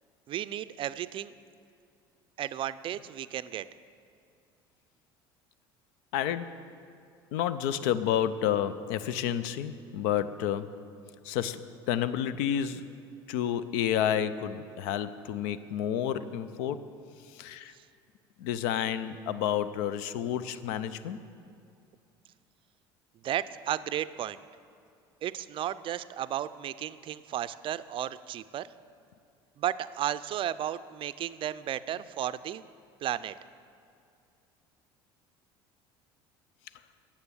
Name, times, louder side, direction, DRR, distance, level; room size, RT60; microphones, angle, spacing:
voice 1, 0.3-1.3 2.4-3.7 17.7-17.8 23.2-24.4 25.2-28.7 29.6-32.6 33.0-33.3, right 11 dB, 45° right, 14 dB, 0.4 m, -34 dB
voice 2, 6.1-6.6 7.3-10.7 11.2-11.6 11.9-12.9 13.3-16.8 17.3-17.7 18.4-21.2, left 10 dB, 75° left, 14 dB, 0.5 m, -30 dB
9.5 x 7.2 x 9.0 m, 2.4 s
hypercardioid pair, 80°, 12 cm